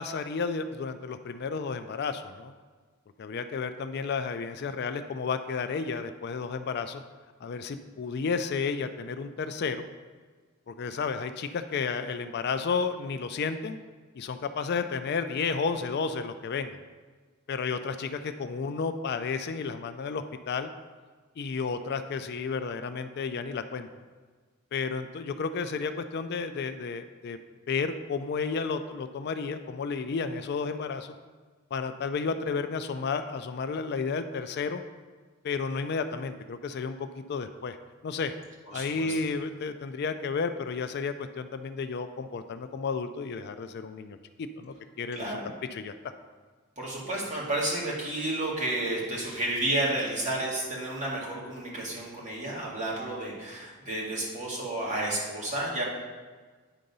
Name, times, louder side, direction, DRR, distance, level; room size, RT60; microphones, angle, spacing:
voice 1, 0.0-2.5 3.2-7.0 7.4-9.9 10.7-13.8 14.1-16.8 17.5-20.7 21.4-23.9 24.7-27.4 27.7-31.1 31.7-34.8 35.4-37.8 38.0-38.3 38.7-45.4 45.7-45.9, left 5 dB, 50° left, 9 dB, 0.4 m, -32 dB
voice 2, 38.7-39.1 45.2-45.4 46.8-55.8, right 1 dB, 35° right, -4 dB, 1.9 m, -31 dB
9.0 x 3.8 x 5.4 m, 1.4 s
head